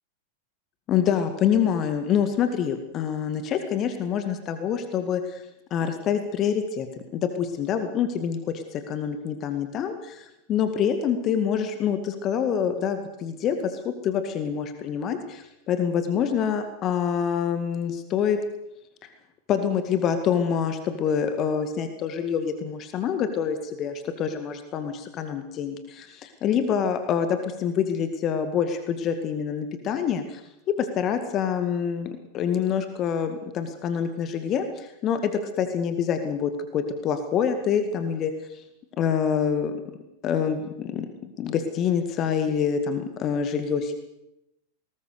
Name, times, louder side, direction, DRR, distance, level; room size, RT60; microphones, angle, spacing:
voice 1, 0.9-5.4 5.7-18.4 19.0-19.1 19.5-30.4 30.7-35.3 35.6-38.6 39.0-39.7 40.2-43.9, left 7 dB, 35° left, 8 dB, 2.1 m, -26 dB
20.5 x 19.5 x 6.9 m, 0.86 s
figure-of-eight pair, 90°, 0 cm